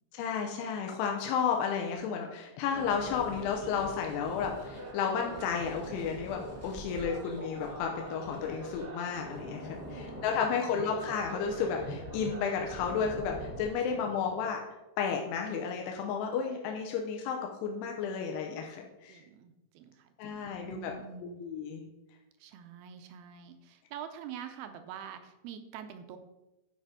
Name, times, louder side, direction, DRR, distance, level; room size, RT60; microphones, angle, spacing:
voice 1, 0.1-14.6 15.0-19.2 20.2-20.9 21.4-21.8, left 6 dB, 90° left, 2 dB, 2.9 m, -32 dB
sound 1, 1.9-2.3 2.7-3.9 5.1-5.5 6.9-7.2, left 5 dB, 65° left, 2.1 m, -54 dB
sound 2, 2.7-13.7, equal, 60° right, 0.6 m, -43 dB
voice 2, 9.8-10.7 13.9-14.0 19.1-21.4 22.4-26.2, right 8 dB, 80° right, 8 dB, 2.3 m, -46 dB
11.5 x 5.1 x 4.9 m, 0.99 s
omnidirectional pair, 4.9 m